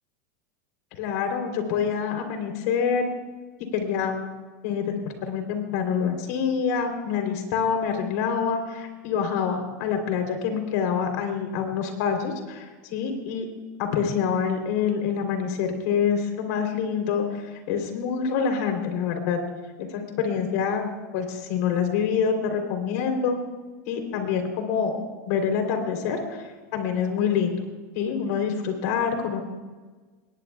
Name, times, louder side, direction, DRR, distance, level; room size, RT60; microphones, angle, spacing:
voice 1, 1.0-3.0 3.6-4.2 4.6-13.5 13.8-17.4 17.7-19.4 19.8-20.9 21.1-23.4 23.9-24.9 25.3-26.4 26.7-27.7 27.9-29.4, left 6 dB, 65° left, 5 dB, 3.4 m, -26 dB
21.5 x 19.5 x 2.3 m, 1.3 s
supercardioid pair, 130°, 9 cm